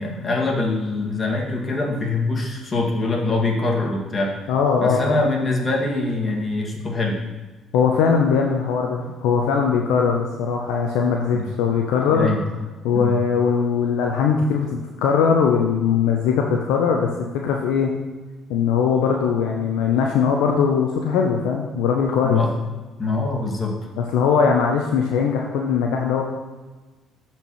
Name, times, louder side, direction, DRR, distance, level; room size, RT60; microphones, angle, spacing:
voice 1, 0.0-4.5 4.8-7.2 11.3-11.5 12.1-12.4 12.9-13.1 22.2-22.5 23.0-23.8, left 2 dB, 35° left, -1 dB, 2.0 m, -23 dB
voice 2, 4.5-5.3 7.7-12.3 12.8-17.1 17.4-17.9 18.5-22.4 24.0-26.2, left 6 dB, 75° left, 1 dB, 0.6 m, -20 dB
12.5 x 4.5 x 3.1 m, 1.3 s
hypercardioid pair, 55°, 0 cm